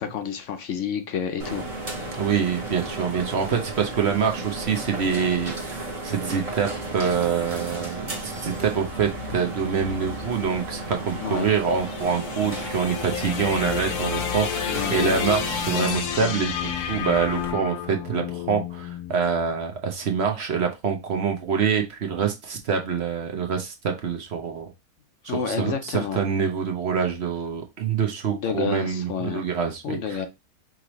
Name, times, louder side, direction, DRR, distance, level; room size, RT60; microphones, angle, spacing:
voice 1, 0.0-1.6 1.9-2.1 11.1-11.5 14.7-15.0 25.3-26.2 28.3-29.5 29.8-30.3, left 7 dB, 60° left, 0.9 m, -29 dB
sound 1, 1.4-17.5, right 1 dB, 25° right, 1.0 m, -34 dB
voice 2, 2.1-24.7 25.2-30.2, right 6 dB, 50° right, 0.9 m, -26 dB
sound 2, 11.4-19.8, left 9 dB, 85° left, 1.2 m, -31 dB
5.0 x 3.2 x 3.0 m
omnidirectional pair, 1.6 m